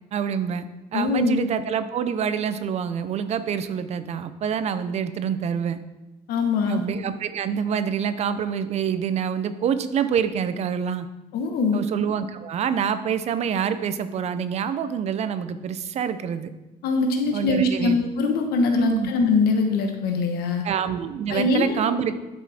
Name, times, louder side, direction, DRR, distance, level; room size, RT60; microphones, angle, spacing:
voice 1, 0.1-5.8 6.6-11.1 11.7-16.5 17.3-18.0 18.8-19.1 20.6-22.2, right 7 dB, 45° right, 12 dB, 0.6 m, -26 dB
voice 2, 0.9-1.5 6.3-6.8 11.3-11.8 16.8-20.7 21.3-22.0, left 3 dB, 85° left, 4 dB, 1.1 m, -22 dB
10.5 x 6.2 x 4.2 m, 1.0 s
cardioid pair, 165°, 16 cm